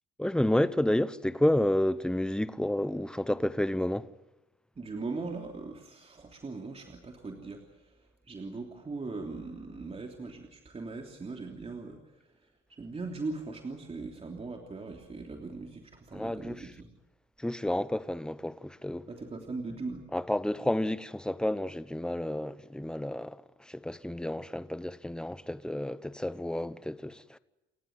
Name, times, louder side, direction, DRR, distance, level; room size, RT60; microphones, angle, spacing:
voice 1, 0.2-4.1 16.1-16.6 17.4-19.1 20.1-23.4 23.7-27.4, left 1 dB, 5° left, 1.0 m, -30 dB
voice 2, 4.7-16.9 19.1-20.1, right 3 dB, 30° right, 3.2 m, -40 dB
29.5 x 15.5 x 9.6 m
cardioid pair, 90°, 20 cm